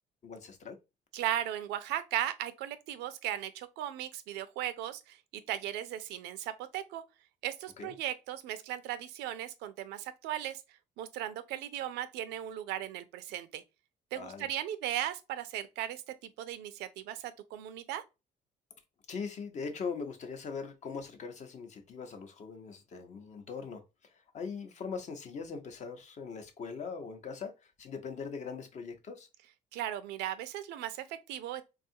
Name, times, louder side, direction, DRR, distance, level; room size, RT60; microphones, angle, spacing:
voice 1, 0.2-0.8 7.8-7.9 14.1-14.5 19.1-23.8 24.3-29.3, left 5 dB, 45° left, 0.7 m, -41 dB
voice 2, 1.1-5.2 5.5-7.0 7.4-10.6 11.0-13.6 14.1-18.0 29.7-31.6, right 12 dB, 85° right, 0.4 m, -37 dB
3.5 x 2.3 x 2.6 m
cardioid pair, 110°, 17 cm